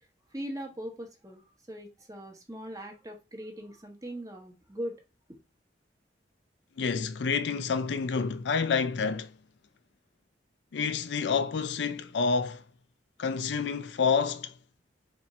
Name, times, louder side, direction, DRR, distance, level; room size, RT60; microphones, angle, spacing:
voice 1, 0.3-1.4 1.7-5.0, equal, 20° right, 0.9 m, -40 dB
voice 2, 6.8-9.3 10.7-12.6 13.2-14.5, left 5 dB, 75° left, 0.4 m, -28 dB
4.2 x 2.5 x 4.2 m
head